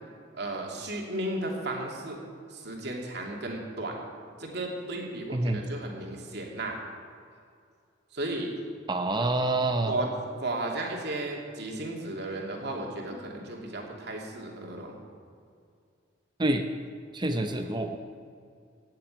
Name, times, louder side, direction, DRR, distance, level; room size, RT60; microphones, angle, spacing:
voice 1, 0.3-2.2 2.5-4.0 4.4-6.8 8.1-8.5 9.1-9.3 9.8-10.1 10.4-15.0 17.3-17.7, right 2 dB, 60° right, 0 dB, 2.7 m, -34 dB
voice 2, 5.3-5.6 8.9-9.9 16.4-16.6 17.1-18.0, right 2 dB, 25° right, 6 dB, 0.7 m, -27 dB
16.5 x 7.6 x 9.1 m, 2.3 s
head